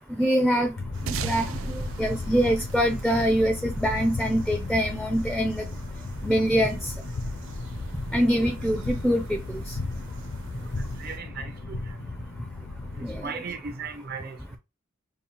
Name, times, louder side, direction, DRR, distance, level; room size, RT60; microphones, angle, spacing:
voice 1, 0.1-0.7 1.2-1.5 2.0-5.7 6.2-6.9 8.1-9.7 13.0-13.3, equal, ahead, 0.4 m, -24 dB
sound 1, 0.8-13.3, left 3 dB, 60° left, 0.5 m, -35 dB
sound 2, 0.9-11.2, equal, 70° right, 1.1 m, -41 dB
sound 3, 1.1-3.8, right 8 dB, 90° right, 0.3 m, -37 dB
voice 2, 11.0-11.8 13.0-14.6, right 5 dB, 50° right, 0.6 m, -37 dB
5.2 x 2.3 x 2.9 m
head